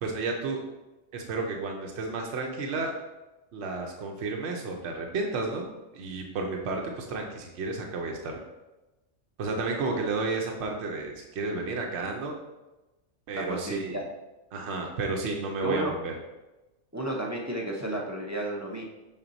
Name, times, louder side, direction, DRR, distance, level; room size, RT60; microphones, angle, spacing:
voice 1, 0.0-0.6 1.1-2.9 3.5-5.7 5.9-8.4 9.4-12.4 13.3-14.0 14.5-16.1, right 3 dB, 65° right, 1 dB, 0.9 m, -32 dB
voice 2, 13.3-14.0 15.6-15.9 16.9-18.8, right 1 dB, 20° right, -2 dB, 0.5 m, -32 dB
5.9 x 4.1 x 3.9 m, 1.1 s
omnidirectional pair, 1.3 m